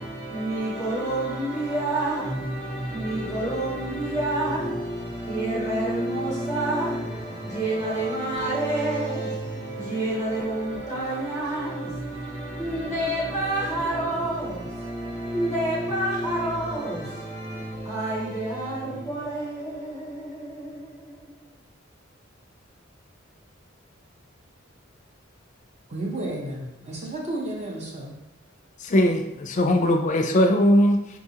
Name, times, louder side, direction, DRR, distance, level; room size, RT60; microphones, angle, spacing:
voice 1, 0.0-21.5, right 1 dB, 10° right, 1.0 m, -28 dB
voice 2, 25.9-28.2, right 1 dB, 35° right, 0.7 m, -32 dB
voice 3, 28.8-31.2, left 1 dB, 40° left, 0.4 m, -20 dB
4.7 x 2.4 x 2.8 m
head